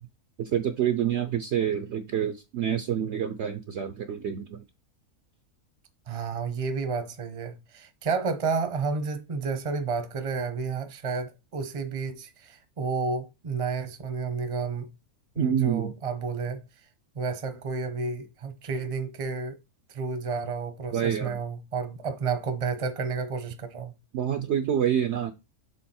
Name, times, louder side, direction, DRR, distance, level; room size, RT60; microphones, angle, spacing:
voice 1, 0.4-4.6 15.4-15.9 20.9-21.4 24.1-25.3, right 9 dB, 65° right, 0.7 m, -27 dB
voice 2, 6.1-14.9 15.3-16.6 17.1-19.6 19.9-23.9, right 5 dB, 30° right, 0.6 m, -31 dB
6.9 x 3.6 x 4.2 m
omnidirectional pair, 1.6 m